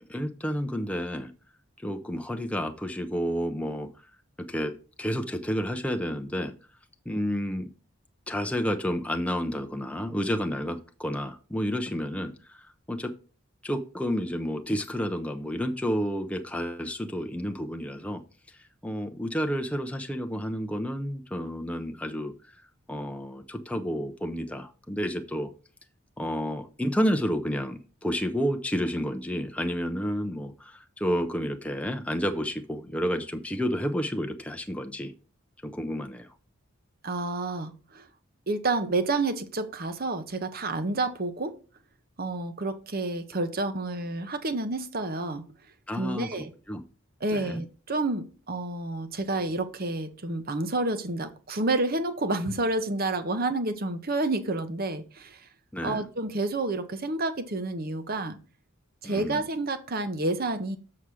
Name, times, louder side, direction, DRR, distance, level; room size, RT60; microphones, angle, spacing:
voice 1, 0.1-1.3 1.8-3.9 4.5-4.7 5.0-6.5 7.1-7.7 8.3-13.1 13.6-18.2 18.8-22.3 22.9-25.5 26.2-35.1 35.6-36.3 45.9-46.3 46.7-46.8 47.3-47.6 55.7-56.0 59.0-59.4, equal, 5° left, 0.5 m, -30 dB
voice 2, 37.0-38.1 38.5-41.6 42.2-45.5 46.0-46.5 47.2-55.4 55.8-58.4 59.0-60.8, right 2 dB, 45° right, 0.8 m, -29 dB
7.0 x 4.8 x 6.2 m
head